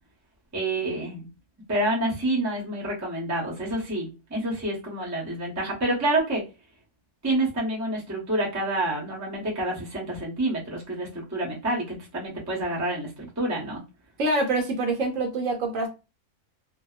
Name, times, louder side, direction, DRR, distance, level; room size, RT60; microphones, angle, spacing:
voice 1, 0.5-1.2 1.7-6.4 7.2-13.8, right 1 dB, 20° right, 0.5 m, -28 dB
voice 2, 14.2-15.9, right 2 dB, 70° right, 0.9 m, -25 dB
2.6 x 2.1 x 2.3 m
omnidirectional pair, 1.6 m